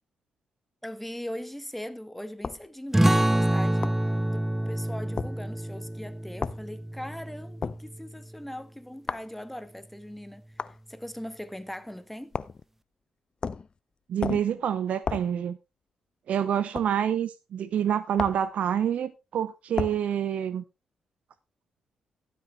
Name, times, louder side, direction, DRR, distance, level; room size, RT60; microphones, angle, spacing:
voice 1, 0.8-4.0 4.3-12.4, left 1 dB, 5° left, 1.2 m, -40 dB
sound 1, 2.4-2.7 3.8-4.0 5.2-5.3 6.4-6.6 7.6-7.8 9.1-9.3 10.6-10.8 12.3-12.6 13.4-13.7 14.2-14.5 15.1-15.3 16.8-16.9 18.2-18.5 19.8-20.0, left 5 dB, 45° left, 0.5 m, -32 dB
sound 2, 2.9-8.1, right 1 dB, 10° right, 0.6 m, -27 dB
voice 2, 14.1-15.6 16.3-20.6, right 9 dB, 65° right, 0.6 m, -27 dB
12.5 x 8.5 x 3.1 m
hypercardioid pair, 45°, 2 cm